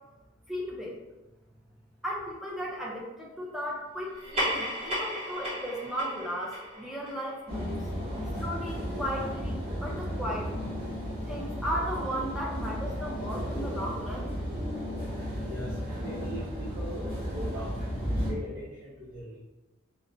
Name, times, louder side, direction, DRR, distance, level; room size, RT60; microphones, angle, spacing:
voice 1, 0.5-1.0 2.0-7.8 8.4-10.6 11.3-14.4, equal, ahead, -4 dB, 0.5 m, -35 dB
sound 1, 4.1-9.0, equal, 30° right, 1.1 m, -36 dB
sound 2, 7.5-18.3, equal, 45° right, 1.4 m, -34 dB
voice 2, 15.5-19.4, equal, 65° right, -9 dB, 0.8 m, -40 dB
4.0 x 2.1 x 2.6 m, 1.1 s
head